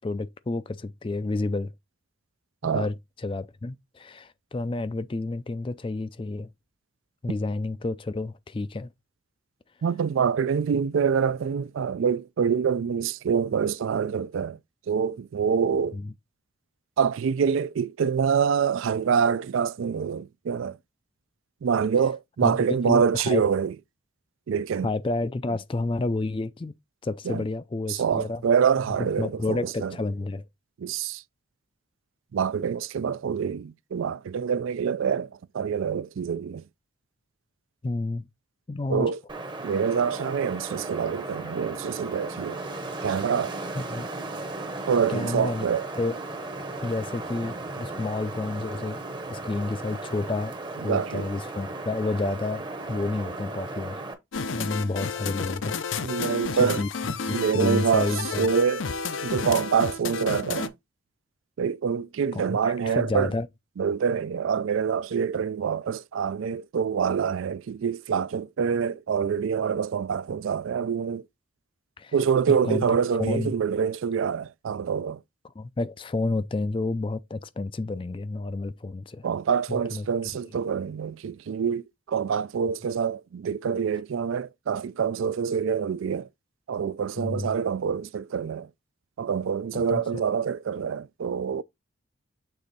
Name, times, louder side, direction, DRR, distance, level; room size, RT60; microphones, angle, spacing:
voice 1, 0.0-1.7 2.6-3.0 3.2-6.5 7.2-8.9 15.9-16.1 22.4-22.6 22.9-23.4 24.8-26.7 27.0-28.4 29.2-30.4 37.8-38.3 38.7-39.1 43.8-44.1 45.1-45.6 46.0-46.2 46.8-49.0 49.3-50.6 50.8-54.0 54.5-55.8 56.2-56.3 56.6-56.9 57.3-58.5 62.3-63.5 72.0-72.1 72.5-73.5 75.6-79.3 79.7-80.1 87.2-87.5 89.7-90.0, left 2 dB, 25° left, 0.3 m, -30 dB
voice 2, 9.8-14.6 14.9-16.0 17.0-20.8 21.6-23.8 24.5-24.9 27.2-27.4 27.9-30.0 30.8-31.2 32.3-36.6 38.9-39.2 39.6-42.6 43.0-43.6 44.9-45.9 50.8-51.3 56.0-56.8 57.3-58.1 58.4-58.9 59.2-60.7 61.6-63.3 63.8-71.2 72.1-75.2 79.2-86.3 86.7-88.7 89.2-91.6, right 6 dB, 75° right, 0.4 m, -26 dB
Wind, 39.3-54.1, right 2 dB, 20° right, 0.8 m, -36 dB
sound 1, 54.3-60.7, left 5 dB, 70° left, 0.6 m, -31 dB
6.8 x 3.5 x 4.0 m
head